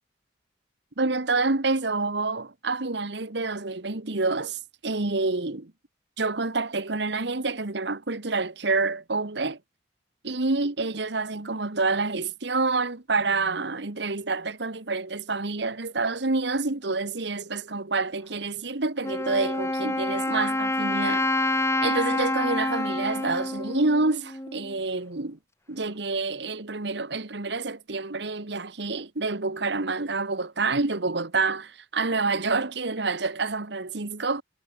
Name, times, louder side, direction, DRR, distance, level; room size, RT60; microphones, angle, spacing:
voice 1, 1.0-5.7 6.2-9.6 10.2-21.3 21.8-25.4 25.7-34.4, right 3 dB, 65° right, 1.5 m, -28 dB
Wind instrument woodwind instrument, 19.0-24.8, left 2 dB, 15° left, 3.1 m, -27 dB
head